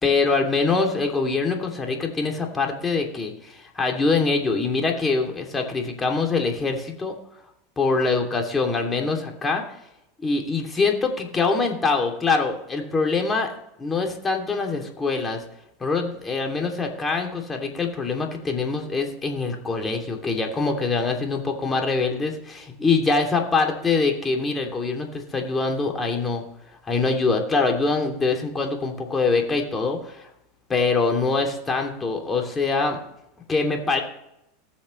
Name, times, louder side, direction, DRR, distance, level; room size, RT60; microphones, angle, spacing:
voice 1, 0.0-7.1 7.8-9.6 10.2-13.5 13.8-15.4 15.8-26.4 26.8-30.3 30.7-33.0 33.5-34.0, left 4 dB, 20° left, 2 dB, 2.9 m, -24 dB
19.5 x 7.2 x 3.3 m, 0.81 s
hypercardioid pair, 90°, 0 cm